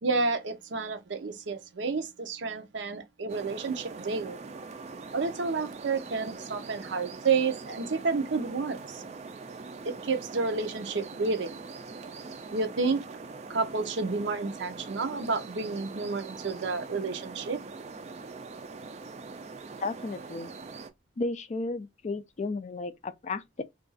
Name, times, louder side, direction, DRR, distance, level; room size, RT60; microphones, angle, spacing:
voice 1, 0.0-4.4 5.1-9.0 9.8-11.6 12.5-13.0 13.5-17.6, right 4 dB, 80° right, 0.6 m, -30 dB
sound 1, 3.3-20.9, right 4 dB, 35° right, 0.4 m, -43 dB
voice 2, 19.8-20.5 21.2-23.6, left 3 dB, 40° left, 0.3 m, -33 dB
2.5 x 2.3 x 3.9 m
head